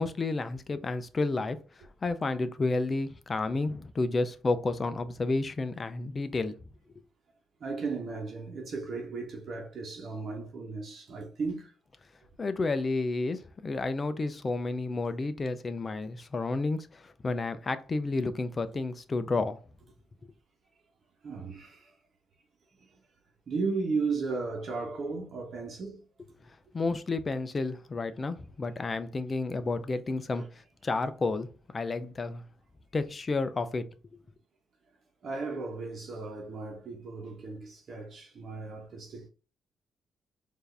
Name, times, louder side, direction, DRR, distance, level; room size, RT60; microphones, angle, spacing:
voice 1, 0.0-1.6 2.0-6.6 12.4-19.6 26.7-30.4 30.8-31.5 31.7-32.4 32.9-33.8 34.1-34.2, left 3 dB, 30° left, 0.6 m, -31 dB
voice 2, 7.6-11.7 21.2-21.9 22.8-22.9 23.5-26.0 30.3-30.5 35.2-39.3, right 4 dB, 55° right, 1.1 m, -35 dB
4.5 x 2.7 x 3.3 m
cardioid pair, 90°, 0 cm